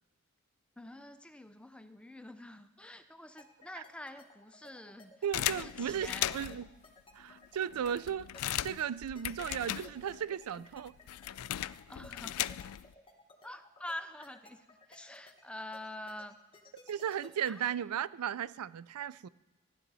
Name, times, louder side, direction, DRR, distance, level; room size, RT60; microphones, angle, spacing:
voice 1, 0.8-5.1 5.5-6.4 11.9-12.5 13.4-16.4 17.5-17.6, left 1 dB, 5° left, 0.6 m, -46 dB
sound 1, 3.4-18.1, left 2 dB, 25° left, 1.3 m, -57 dB
voice 2, 5.2-6.7 7.2-8.3 8.6-10.9 16.9-19.3, right 9 dB, 90° right, 0.4 m, -35 dB
sound 2, 5.3-6.7 7.3-7.4 7.6-10.3 10.5-12.9, left 13 dB, 85° left, 0.3 m, -37 dB
15.0 x 10.5 x 4.1 m
head